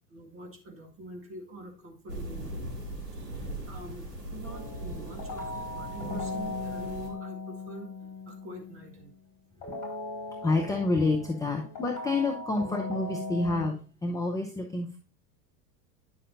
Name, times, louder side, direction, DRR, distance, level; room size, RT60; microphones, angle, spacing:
voice 1, 0.1-2.6 3.1-9.1 9.5-9.6, right 1 dB, 25° right, 3 dB, 1.8 m, -46 dB
sound 1, 2.1-7.1, right 1 dB, 75° right, 2.0 m, -39 dB
sound 2, 4.4-9.0 9.6-13.7, left 3 dB, 40° left, 4.5 m, -38 dB
voice 2, 10.4-15.0, left 3 dB, 5° left, 2 dB, 0.6 m, -28 dB
9.7 x 7.1 x 2.5 m, 0.34 s
figure-of-eight pair, 85°, 49 cm